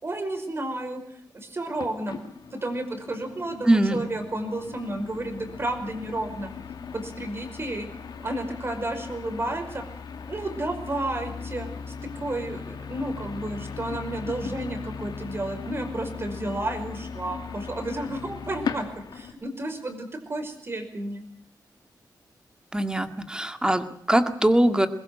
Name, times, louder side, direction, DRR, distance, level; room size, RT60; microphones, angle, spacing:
voice 1, 0.0-2.2 2.5-6.5 6.9-7.9 8.2-9.8 10.3-11.7 12.2-18.9 19.1-21.2, right 1 dB, 35° right, 6 dB, 5.4 m, -32 dB
sound 1, 1.8-19.3, left 6 dB, 85° left, 2.5 m, -38 dB
voice 2, 3.6-4.0 22.7-24.9, right 1 dB, 10° right, 8 dB, 2.0 m, -22 dB
22.5 x 21.0 x 7.8 m, 0.63 s
wide cardioid pair, 115°, 7 cm